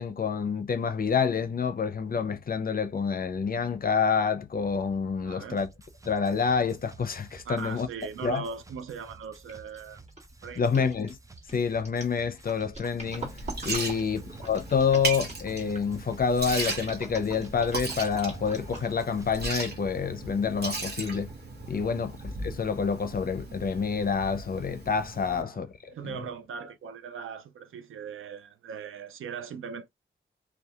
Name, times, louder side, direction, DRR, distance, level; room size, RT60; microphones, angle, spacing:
voice 1, 0.0-5.7 6.0-7.9 8.2-8.4 10.6-11.2 11.5-13.4 13.6-21.3 21.7-26.2, left 6 dB, 45° left, 0.5 m, -28 dB
voice 2, 5.2-5.6 7.4-10.0 10.4-10.9 13.8-14.0 21.7-22.0 25.2-25.6 25.9-29.9, right 6 dB, 90° right, 0.4 m, -40 dB
sound 1, 5.6-19.6, right 3 dB, 15° right, 0.4 m, -52 dB
sound 2, 9.5-9.8 10.1-15.9 16.5-19.1 19.6-19.7, right 3 dB, 35° right, 1.5 m, -43 dB
Liquid, 13.1-25.4, right 3 dB, 50° right, 1.0 m, -37 dB
2.7 x 2.2 x 2.3 m
cardioid pair, 65°, 20 cm